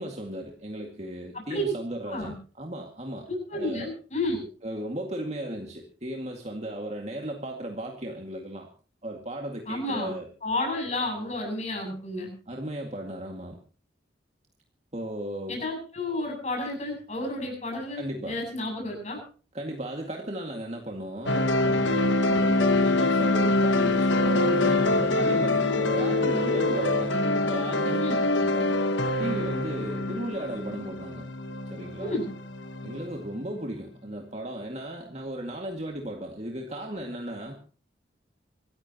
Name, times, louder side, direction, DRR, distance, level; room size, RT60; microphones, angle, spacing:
voice 1, 0.0-3.3 3.5-3.9 4.6-8.7 9.0-10.3 12.5-13.6 14.9-15.6 17.9-18.4 19.5-27.2 27.5-28.8 29.2-31.2 31.7-32.2 32.8-37.5, right 1 dB, 35° right, 1 dB, 2.1 m, -36 dB
voice 2, 3.3-4.5 9.7-10.1 10.4-12.3 15.5-19.2 28.0-28.2 32.0-32.3, left 1 dB, 35° left, 1 dB, 8.0 m, -31 dB
sound 1, 21.3-33.4, left 2 dB, 80° left, 1.3 m, -25 dB
Bowed string instrument, 24.3-28.5, equal, 10° left, 1.5 m, -36 dB
26.5 x 14.5 x 3.0 m, 0.40 s
head